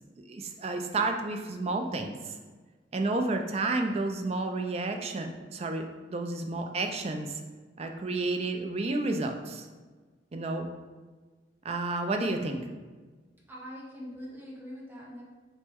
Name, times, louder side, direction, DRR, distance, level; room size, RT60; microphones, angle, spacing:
voice 1, 0.3-2.3 2.9-7.4 7.8-9.7 10.3-10.7 11.6-12.6, right 2 dB, 35° right, 4 dB, 0.4 m, -31 dB
voice 2, 13.5-15.2, equal, 10° right, -5 dB, 0.9 m, -43 dB
5.9 x 2.2 x 3.4 m, 1.4 s
head